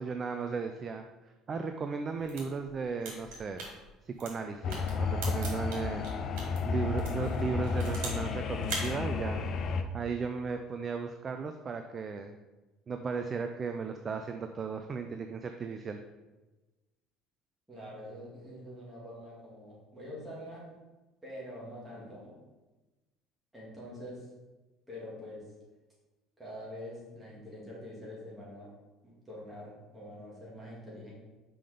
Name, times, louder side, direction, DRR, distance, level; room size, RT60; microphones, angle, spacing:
voice 1, 0.0-3.7 4.0-6.1 6.6-9.5 9.9-12.3 12.9-16.0, right 5 dB, 25° right, 6 dB, 0.3 m, -36 dB
sound 1, 2.1-6.6 7.0-8.3 8.6-8.9, right 3 dB, 80° right, 2.5 m, -41 dB
sound 2, 4.6-9.8, left 4 dB, 35° left, 0.5 m, -32 dB
voice 2, 17.7-20.6 21.2-22.4 23.5-24.3 24.9-25.4 26.4-28.7 29.0-31.1, left 1 dB, 5° right, -7 dB, 2.3 m, -45 dB
5.7 x 5.3 x 5.0 m, 1.1 s
cardioid pair, 175°, 0 cm